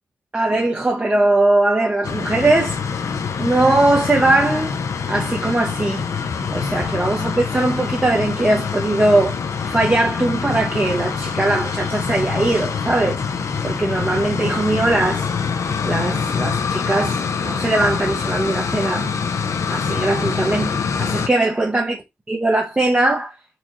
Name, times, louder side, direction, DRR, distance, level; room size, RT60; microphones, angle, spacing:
voice 1, 0.3-2.8 3.4-4.7 5.1-6.0 6.5-13.2 13.6-15.3 15.8-19.1 19.7-21.9 22.3-23.3, right 2 dB, 25° right, 0.7 m, -20 dB
sound 1, 2.0-21.3, left 6 dB, 70° left, 0.5 m, -25 dB
3.9 x 2.4 x 2.9 m
cardioid pair, 55°, 5 cm